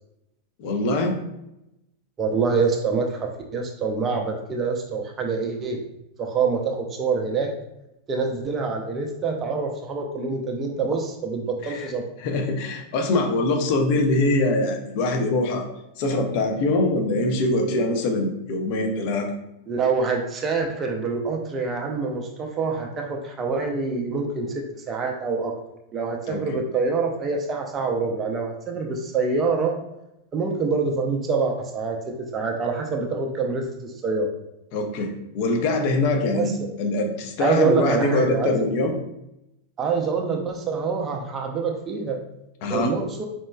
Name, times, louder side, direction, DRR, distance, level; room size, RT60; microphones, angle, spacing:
voice 1, 0.6-1.2 11.6-11.9 12.2-15.6 16.0-19.3 26.3-26.4 34.7-36.5 36.8-38.9 42.6-42.9, left 2 dB, 45° left, 3 dB, 0.6 m, -23 dB
voice 2, 2.2-5.8 6.2-7.5 8.1-12.0 19.7-25.5 25.9-29.8 30.3-34.3 36.3-36.5 37.4-38.5 39.8-42.2 42.7-43.2, right 4 dB, 25° right, 2 dB, 0.5 m, -25 dB
4.2 x 2.9 x 2.2 m, 0.87 s
figure-of-eight pair, 90°, 0 cm